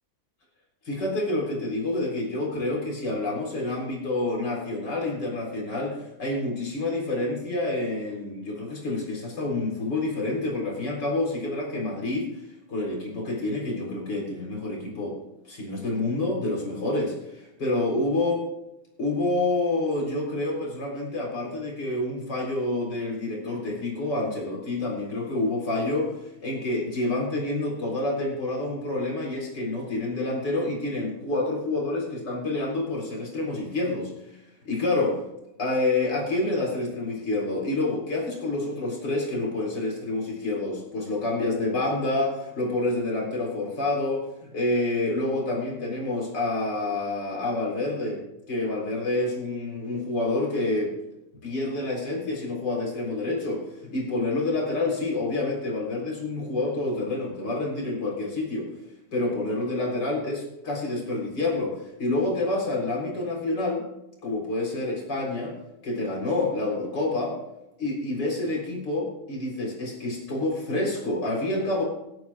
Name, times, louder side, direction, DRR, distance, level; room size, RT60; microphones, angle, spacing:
voice 1, 0.9-12.3 12.7-15.2 15.5-18.4 19.0-34.1 34.6-35.2 35.6-48.2 48.5-50.9 51.4-58.7 59.1-63.8 64.2-65.5 65.8-67.4 67.8-71.8, left 2 dB, 60° left, -2 dB, 4.6 m, -28 dB
26.0 x 9.4 x 2.5 m, 0.88 s
omnidirectional pair, 2.2 m